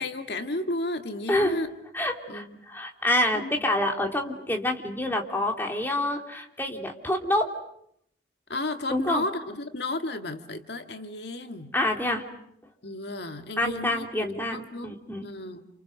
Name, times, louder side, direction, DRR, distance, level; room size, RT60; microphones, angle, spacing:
voice 1, 0.0-1.7 2.3-2.6 3.4-3.5 8.5-11.7 12.8-15.7, left 2 dB, 60° left, 7 dB, 2.0 m, -33 dB
voice 2, 1.3-1.6 1.9-7.5 8.9-9.2 11.7-12.2 13.6-15.3, left 1 dB, 10° left, 2 dB, 3.1 m, -27 dB
29.5 x 28.5 x 6.6 m, 0.72 s
head